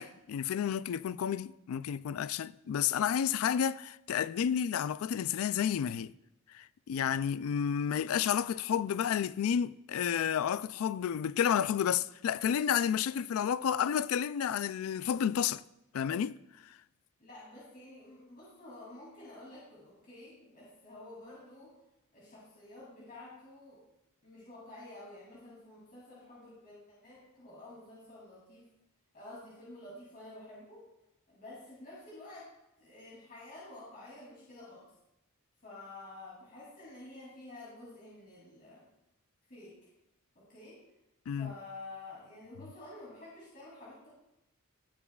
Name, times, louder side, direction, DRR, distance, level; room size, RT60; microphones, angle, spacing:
voice 1, 0.0-6.1 6.5-15.6 15.9-16.4 41.3-41.5, left 8 dB, 75° left, 0.3 m, -31 dB
voice 2, 17.2-21.7 22.1-23.8 24.2-28.7 29.1-30.8 31.3-32.5 32.8-34.9 35.6-38.9 39.5-39.7 40.3-40.8 41.4-44.1, left 2 dB, 45° left, 2.9 m, -50 dB
17.0 x 7.0 x 2.4 m
head